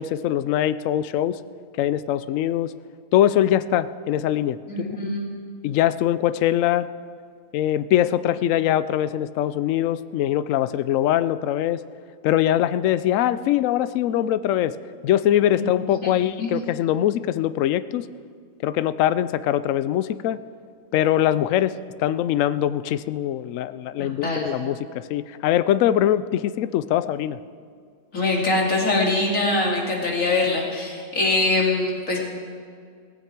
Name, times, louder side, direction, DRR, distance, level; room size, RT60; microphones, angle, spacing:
voice 1, 0.0-1.4 1.8-2.7 3.1-5.1 5.6-6.9 7.5-11.8 12.2-14.7 15.0-18.0 18.6-20.4 20.9-21.7 22.0-27.4, left 12 dB, 70° left, 15 dB, 0.8 m, -22 dB
voice 2, 4.7-5.3 15.5-15.7 16.0-16.1 16.4-16.5 24.0-24.5 28.1-32.2, left 2 dB, 50° left, -2 dB, 3.1 m, -23 dB
17.5 x 15.0 x 4.6 m, 2.2 s
omnidirectional pair, 1.7 m